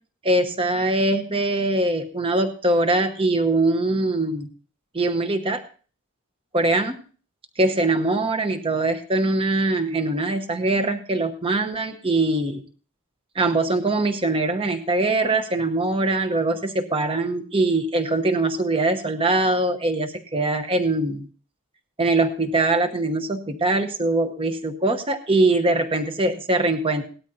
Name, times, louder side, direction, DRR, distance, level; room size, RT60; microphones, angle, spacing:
voice 1, 0.2-4.5 4.9-5.6 6.5-7.0 7.6-12.6 13.3-21.3 22.0-27.0, right 2 dB, 25° right, 6 dB, 1.0 m, -22 dB
18.0 x 12.5 x 2.8 m, 0.39 s
head